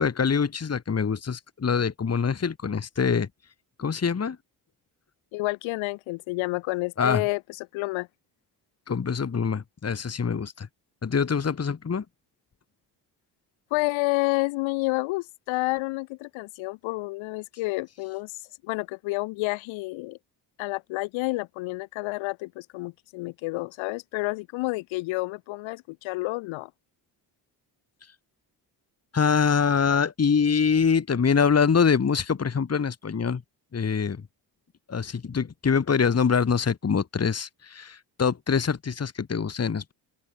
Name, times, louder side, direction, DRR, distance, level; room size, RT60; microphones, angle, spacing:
voice 1, 0.0-3.3 3.8-4.4 7.0-7.2 8.9-10.7 11.0-12.0 29.1-33.4 33.7-34.3 34.9-39.9, left 6 dB, 35° left, 1.7 m, -24 dB
voice 2, 5.3-8.1 13.7-18.3 18.6-20.2 20.6-26.7, left 23 dB, 90° left, 2.5 m, -29 dB
open air
supercardioid pair, 55°, 46 cm